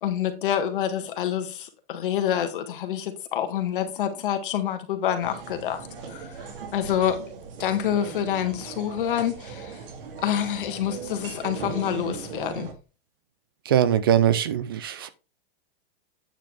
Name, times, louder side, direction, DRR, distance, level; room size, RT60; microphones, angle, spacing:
voice 1, 0.0-6.3 6.7-7.3 7.6-9.8 10.2-12.7, left 10 dB, 55° left, 1.7 m, -27 dB
sound 1, 5.2-12.7, right 5 dB, 60° right, 2.2 m, -38 dB
voice 2, 13.7-15.1, right 10 dB, 25° right, 0.3 m, -21 dB
9.0 x 4.3 x 4.8 m
supercardioid pair, 175°, 31 cm